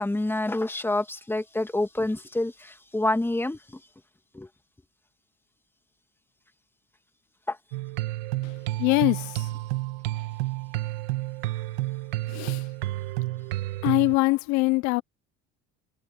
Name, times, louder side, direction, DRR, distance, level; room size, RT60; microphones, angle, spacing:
voice 1, 0.0-3.8 4.3-4.5 7.5-7.6, left 2 dB, 10° left, 2.0 m, -27 dB
sound 1, 7.7-14.2, right 18 dB, 85° right, 1.6 m, -30 dB
voice 2, 8.8-9.5 12.3-12.6 13.8-15.0, left 23 dB, 75° left, 0.7 m, -23 dB
supercardioid pair, 100°, 29 cm